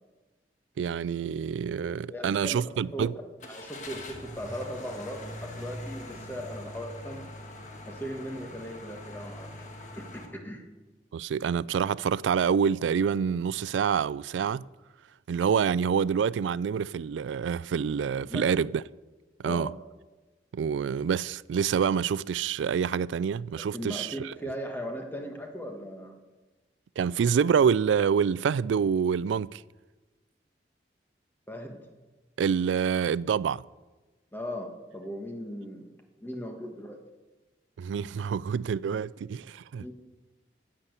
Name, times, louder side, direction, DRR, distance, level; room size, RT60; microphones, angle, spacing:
voice 1, 0.8-3.1 11.1-14.7 15.3-18.8 19.4-19.7 20.5-24.3 27.0-29.6 32.4-33.6 37.8-39.9, right 7 dB, 90° right, 0.3 m, -27 dB
voice 2, 2.1-3.1 3.5-7.2 7.8-9.7 10.0-10.6 18.3-18.4 19.4-19.7 23.6-26.1 31.5-31.8 34.3-37.0 39.7-39.9, equal, 10° left, 1.5 m, -38 dB
Car / Engine starting, 3.4-10.3, left 1 dB, 40° left, 1.7 m, -42 dB
11.0 x 8.7 x 8.0 m
head